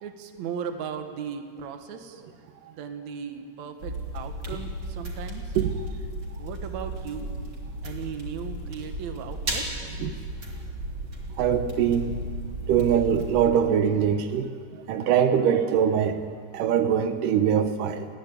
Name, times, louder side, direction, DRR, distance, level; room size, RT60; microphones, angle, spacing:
voice 1, 0.0-2.2 2.7-5.6 6.4-7.4 7.8-9.9, right 7 dB, 65° right, 7 dB, 2.5 m, -37 dB
sound 1, 3.8-13.5, right 1 dB, 40° right, 4.3 m, -35 dB
voice 2, 11.4-12.2 12.7-14.5 14.9-16.2 16.5-18.1, right 8 dB, 85° right, 8 dB, 2.5 m, -22 dB
30.0 x 10.5 x 9.8 m, 2.2 s
omnidirectional pair, 3.8 m